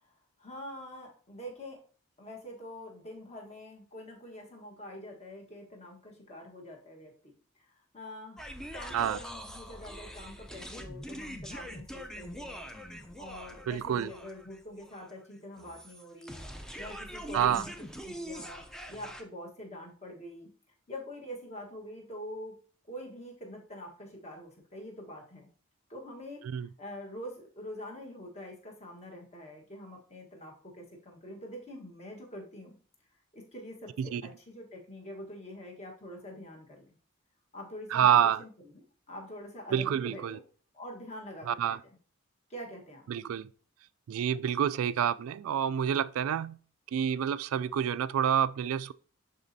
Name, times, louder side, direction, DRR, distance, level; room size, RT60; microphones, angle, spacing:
voice 1, 0.4-1.8 2.2-7.3 7.9-17.7 18.0-20.5 20.9-22.6 22.9-25.5 25.9-26.4 26.8-32.7 33.3-36.9 37.5-40.4 40.7-41.8 42.5-43.0, equal, 30° left, 1.4 m, -45 dB
sound 1, 8.4-19.2, equal, 5° left, 0.5 m, -44 dB
voice 2, 13.7-14.1 17.3-17.6 26.5-26.7 34.0-34.2 37.9-38.4 39.7-40.4 41.5-41.8 43.1-43.5 44.1-46.6 46.9-48.9, right 9 dB, 80° right, 0.3 m, -28 dB
11.0 x 4.1 x 2.7 m
head